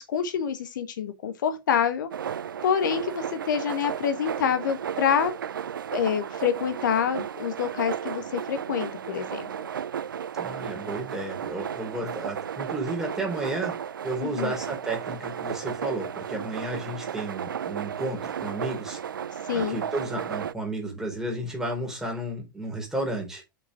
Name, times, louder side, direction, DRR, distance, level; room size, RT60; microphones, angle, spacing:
voice 1, 0.0-2.1 2.6-5.3 5.9-9.5 14.2-14.5 19.5-19.8, left 8 dB, 65° left, 1.3 m, -27 dB
sound 1, 2.1-20.5, right 8 dB, 70° right, 0.5 m, -34 dB
voice 2, 10.4-13.8 14.0-19.0 19.5-23.4, right 1 dB, 5° right, 4.0 m, -32 dB
6.9 x 6.1 x 4.9 m
figure-of-eight pair, 95°, 11 cm